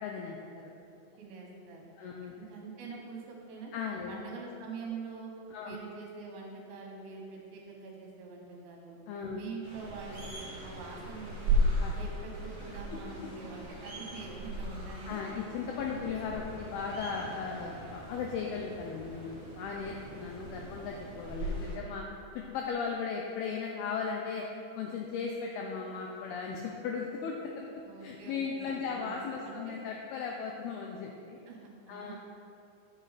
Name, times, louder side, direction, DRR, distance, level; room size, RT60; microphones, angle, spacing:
voice 1, 0.0-0.4 0.6-0.7 2.0-2.3 3.7-4.2 5.5-5.8 9.1-9.4 11.8-11.9 12.9-13.0 15.1-22.1 22.4-24.5 24.8-27.7 28.0-31.4 31.9-32.2, left 5 dB, 90° left, 0 dB, 2.2 m, -37 dB
voice 2, 1.2-2.1 2.4-3.7 4.1-5.3 5.6-9.0 9.3-10.3 10.6-11.6 11.9-15.2 20.2-20.3 27.9-29.2 29.5-29.8 31.5-32.2, right 4 dB, 75° right, -1 dB, 3.4 m, -45 dB
sound 1, 9.6-21.8, right 1 dB, 45° right, 1.2 m, -36 dB
9.1 x 7.4 x 4.0 m, 2.6 s
omnidirectional pair, 5.1 m